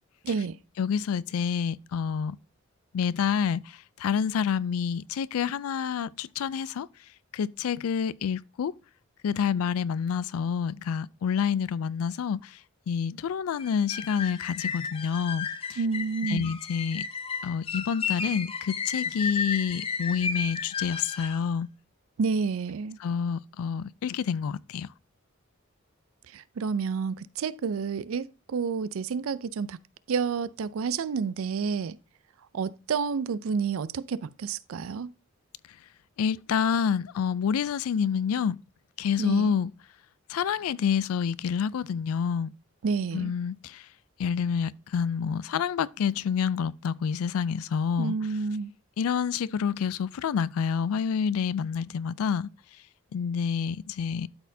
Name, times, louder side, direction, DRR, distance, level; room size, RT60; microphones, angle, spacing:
voice 1, 0.2-0.6 15.8-16.5 22.2-23.0 26.3-29.8 30.1-32.0 32.5-35.1 39.2-39.5 42.8-43.3 48.0-48.7, right 5 dB, 75° right, 0.4 m, -29 dB
voice 2, 0.8-2.4 2.9-6.9 7.3-8.8 9.2-12.6 12.9-15.8 16.3-17.1 17.4-21.7 23.0-24.9 36.2-38.6 39.0-39.7 40.3-42.5 43.1-43.9 44.2-48.1 49.0-52.5 53.1-54.3, left 7 dB, 90° left, 0.3 m, -28 dB
sound 1, 13.6-21.4, left 6 dB, 25° left, 0.5 m, -33 dB
12.0 x 4.2 x 2.7 m
head